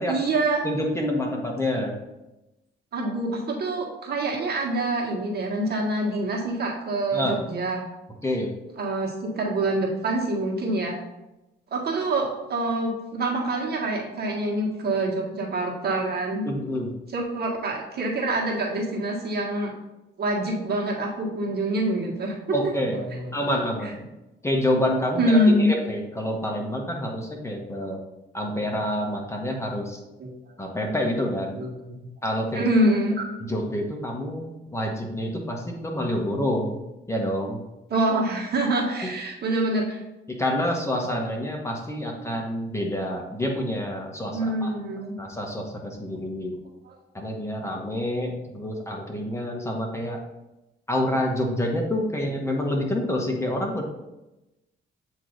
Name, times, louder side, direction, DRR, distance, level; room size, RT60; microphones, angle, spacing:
voice 1, 0.1-0.6 2.9-7.8 8.8-10.9 11.7-16.5 17.1-19.7 20.2-22.6 23.1-23.4 23.8-23.9 25.2-25.7 30.2-30.3 31.5-31.9 32.5-33.2 37.9-40.0 44.3-45.1 46.8-47.0, right 1 dB, 55° right, -1 dB, 1.5 m, -25 dB
voice 2, 0.6-1.9 7.1-7.4 8.2-8.5 16.4-16.9 22.5-23.0 23.3-24.0 24.4-28.0 28.3-30.0 30.6-31.6 32.2-32.7 33.4-36.8 37.1-37.6 39.0-39.1 40.4-44.7 45.2-46.5 47.1-50.2 50.9-53.8, left 1 dB, 15° left, 0 dB, 1.1 m, -27 dB
8.0 x 3.1 x 3.9 m, 0.97 s
cardioid pair, 90°, 20 cm